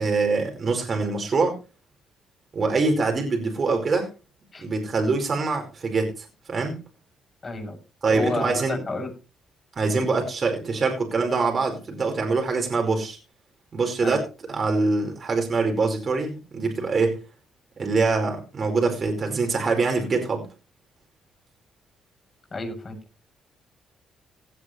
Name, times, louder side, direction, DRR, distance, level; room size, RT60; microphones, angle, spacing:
voice 1, 0.0-1.6 2.5-4.1 4.6-6.8 8.0-8.8 9.8-13.2 13.7-14.2 14.5-17.2 17.8-20.4, right 3 dB, 40° right, 4.7 m, -24 dB
voice 2, 7.4-7.8 8.1-9.1 9.9-10.1 14.0-14.2 22.5-23.0, left 3 dB, 30° left, 7.4 m, -31 dB
17.5 x 11.0 x 3.3 m
cardioid pair, 90°, 0 cm